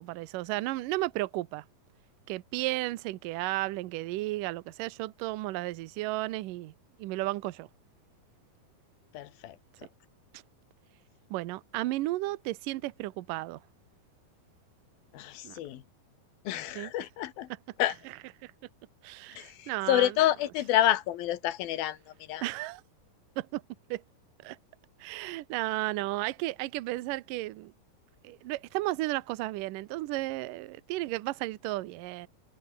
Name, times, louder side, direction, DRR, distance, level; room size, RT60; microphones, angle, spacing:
voice 1, 0.0-1.6 2.3-6.7 7.0-7.7 10.3-10.4 11.3-13.6 15.4-15.6 16.8-16.9 18.1-18.2 18.4-18.5 19.0-20.2 22.4-22.8 23.4-23.6 23.9-24.0 24.4-24.6 25.0-27.7 28.2-32.3, right 18 dB, 75° right, 2.4 m, -33 dB
voice 2, 9.1-9.6 15.1-15.8 16.4-17.5 17.8-17.9 19.3-22.0 22.3-22.4, left 13 dB, 90° left, 3.2 m, -28 dB
omnidirectional pair, 4.1 m